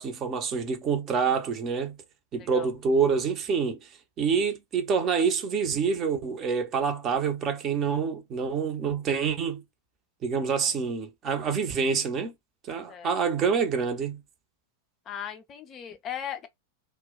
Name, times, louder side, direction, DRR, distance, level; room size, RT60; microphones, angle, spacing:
voice 1, 0.0-2.0 2.3-3.8 4.2-9.6 10.2-12.3 12.7-14.2, right 6 dB, 30° right, 0.7 m, -27 dB
voice 2, 2.4-2.7 12.9-13.1 15.1-16.5, left 9 dB, 30° left, 0.4 m, -37 dB
2.2 x 2.1 x 3.7 m
figure-of-eight pair, 90°, 0 cm